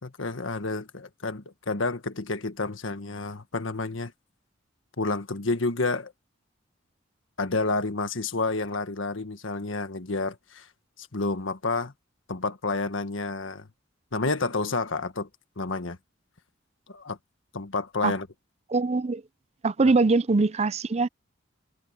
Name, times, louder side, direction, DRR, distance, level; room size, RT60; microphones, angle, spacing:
voice 1, 0.0-4.1 5.0-6.1 7.4-10.7 11.0-11.9 12.3-13.7 14.1-15.3 15.6-16.0 16.9-17.2 17.5-18.3, left 3 dB, 85° left, 1.5 m, -29 dB
voice 2, 18.7-19.2 19.6-21.1, right 3 dB, 35° right, 0.5 m, -22 dB
head